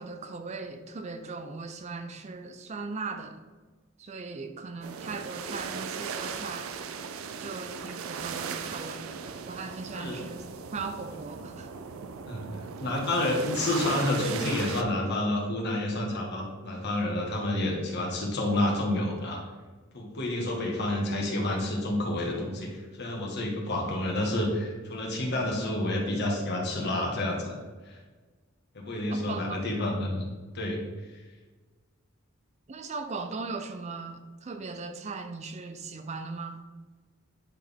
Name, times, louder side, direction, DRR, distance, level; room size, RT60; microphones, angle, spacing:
voice 1, 0.0-3.4 4.0-6.7 7.4-9.1 9.5-10.4 10.7-11.7 29.1-29.6 32.7-36.6, right 4 dB, 35° right, 8 dB, 0.5 m, -38 dB
sound 1, 4.8-14.8, right 6 dB, 90° right, 0.5 m, -37 dB
voice 2, 12.2-19.4 19.9-27.6 27.8-28.0 28.7-30.8 31.1-31.2, left 1 dB, 55° left, -1 dB, 1.7 m, -29 dB
9.9 x 4.2 x 3.6 m, 1.3 s
head